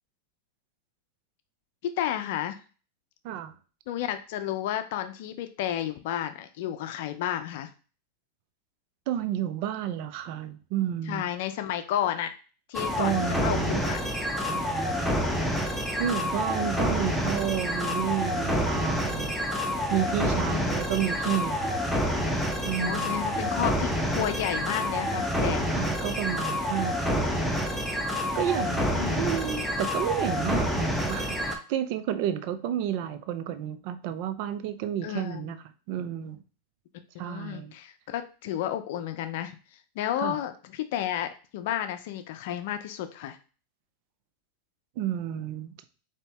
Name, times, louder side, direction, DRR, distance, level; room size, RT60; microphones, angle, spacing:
voice 1, 1.8-2.6 3.9-7.7 11.1-12.3 12.7-14.0 15.0-15.2 20.5-21.1 22.8-25.7 28.6-29.3 35.0-35.5 37.1-39.6 40.0-43.4, left 11 dB, 65° left, 9 dB, 0.5 m, -32 dB
voice 2, 9.1-11.2 13.0-13.8 14.4-15.3 16.0-19.3 19.9-21.8 22.6-23.2 25.7-27.3 28.3-28.8 29.2-35.6 35.9-36.4 37.2-37.7 40.2-40.4 45.0-45.7, right 10 dB, 55° right, 11 dB, 0.5 m, -31 dB
sound 1, 12.7-31.6, equal, ahead, 0.8 m, -28 dB
4.0 x 2.9 x 3.4 m, 0.36 s
hypercardioid pair, 110°, 0 cm